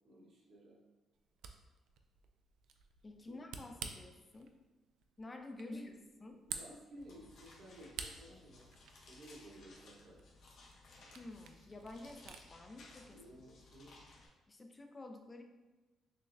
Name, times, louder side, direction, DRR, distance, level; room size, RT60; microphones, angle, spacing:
voice 1, 0.0-0.8 3.2-3.4 5.6-5.9 6.5-8.7 9.0-10.2 13.1-13.9, equal, 65° right, -3 dB, 1.1 m, -55 dB
Camera, 1.1-12.5, right 6 dB, 85° right, 0.3 m, -52 dB
voice 2, 3.0-4.6 5.2-5.8 6.2-6.4 11.1-13.2 14.5-15.4, left 2 dB, 25° left, 5 dB, 0.4 m, -50 dB
sound 1, 7.0-14.3, left 3 dB, 70° left, 0.8 m, -60 dB
6.2 x 2.1 x 2.5 m, 1.1 s
cardioid pair, 90°, 0 cm